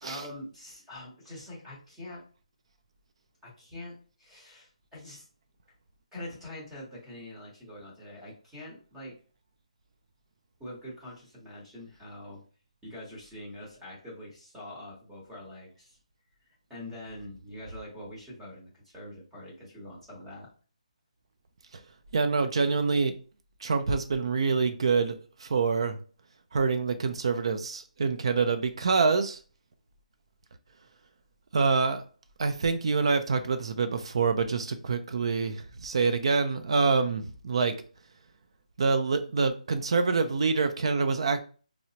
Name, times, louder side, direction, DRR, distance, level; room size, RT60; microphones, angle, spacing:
voice 1, 0.0-2.2 3.4-5.3 6.1-9.1 10.6-12.4 12.8-16.0 16.5-20.5, left 1 dB, 5° right, -6 dB, 1.0 m, -44 dB
voice 2, 22.1-23.1 23.6-26.0 26.5-29.4 31.5-32.0 32.4-37.7 38.8-41.4, right 4 dB, 45° right, 10 dB, 0.4 m, -26 dB
4.4 x 2.0 x 2.7 m, 0.38 s
hypercardioid pair, 170°, 4 cm